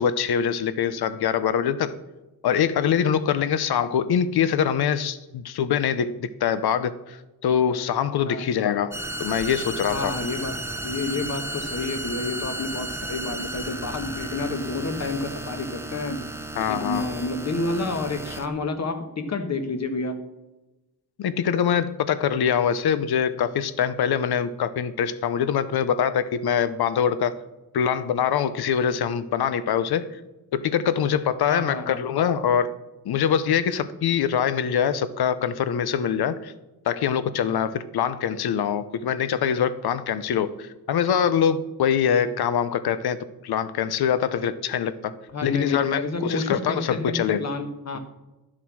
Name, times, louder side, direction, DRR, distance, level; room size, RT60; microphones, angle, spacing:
voice 1, 0.0-1.9 2.4-10.1 16.6-17.0 21.2-27.3 27.7-30.1 30.5-32.7 33.0-36.5 36.8-45.1 45.4-47.4, left 8 dB, 80° left, 14 dB, 0.8 m, -24 dB
sound 1, 8.9-18.5, right 1 dB, 5° right, 0.7 m, -34 dB
voice 2, 9.9-16.3 16.7-20.2 31.5-32.0 45.3-48.0, left 3 dB, 45° left, 8 dB, 1.3 m, -29 dB
12.5 x 7.6 x 6.2 m, 1.0 s
wide cardioid pair, 165°, 37 cm